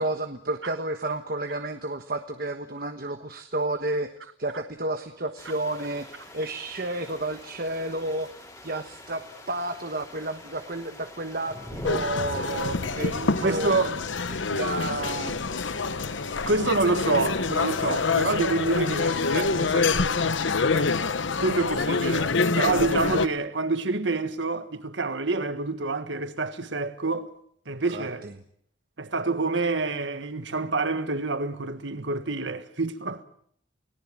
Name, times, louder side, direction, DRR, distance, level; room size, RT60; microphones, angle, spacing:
voice 1, 0.0-4.1 4.4-8.3 8.6-13.7 14.3-15.5 27.9-28.3, right 2 dB, 50° right, 1.3 m, -31 dB
sound 1, 5.4-20.1, left 1 dB, 20° left, 3.5 m, -45 dB
sound 2, 11.8-23.3, left 4 dB, 75° left, 1.0 m, -26 dB
voice 2, 13.4-13.9 16.5-20.4 20.7-20.9 21.4-27.3 27.7-28.3 29.0-33.2, right 3 dB, 70° right, 1.6 m, -27 dB
29.5 x 18.5 x 7.6 m
head